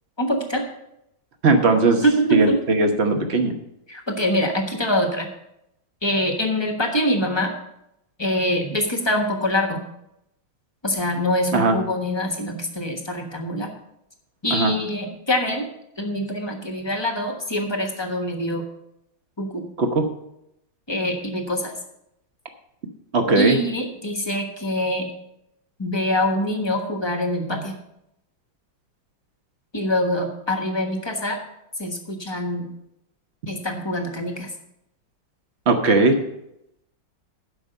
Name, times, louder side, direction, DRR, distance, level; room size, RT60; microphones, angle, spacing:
voice 1, 0.2-0.7 2.0-2.5 3.9-5.3 6.0-7.5 8.2-9.8 10.8-13.7 14.4-15.7 16.0-18.6 19.4-19.7 20.9-21.7 23.3-25.1 25.8-27.8 29.7-31.4 31.8-32.7 33.5-34.5, equal, 15° left, 3 dB, 1.0 m, -24 dB
voice 2, 1.4-2.0 2.3-3.5 11.5-11.8 14.5-14.7 19.8-20.0 23.1-23.6 35.7-36.2, right 3 dB, 40° right, 5 dB, 1.1 m, -18 dB
12.0 x 5.4 x 6.5 m, 0.82 s
omnidirectional pair, 2.2 m